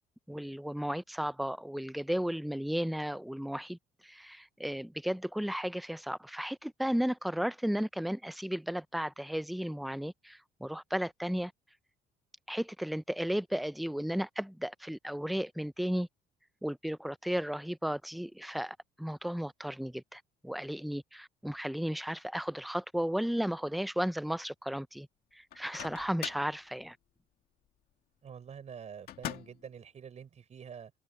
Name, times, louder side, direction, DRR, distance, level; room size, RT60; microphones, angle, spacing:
voice 1, 0.3-3.8 4.0-11.5 12.5-16.1 16.6-25.1 25.3-27.0, equal, ahead, 0.5 m, -34 dB
Microwave oven, 25.5-26.6 29.1-29.7, left 12 dB, 65° left, 2.1 m, -41 dB
voice 2, 28.2-30.9, right 7 dB, 40° right, 5.2 m, -47 dB
cardioid pair, 110°, 17 cm